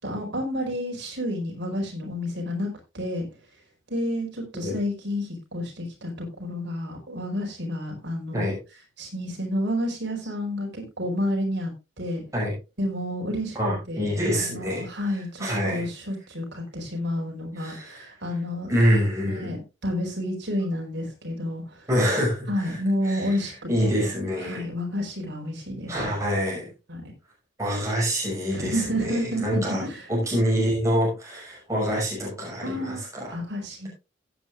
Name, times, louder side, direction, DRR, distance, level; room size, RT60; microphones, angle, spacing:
voice 1, 0.0-3.2 3.9-8.5 9.0-11.7 12.0-12.2 12.8-13.6 13.9-18.7 19.4-21.9 22.5-23.9 24.4-26.1 26.9-27.1 28.5-30.1 32.6-33.9, left 1 dB, 65° right, 0 dB, 5.0 m, -30 dB
voice 2, 13.5-14.9 15.4-15.9 17.6-18.1 18.7-19.5 21.9-22.8 23.0-23.4 23.7-24.6 25.9-26.7 27.6-33.4, equal, 15° right, -3 dB, 6.0 m, -26 dB
16.0 x 9.3 x 2.5 m, 0.28 s
head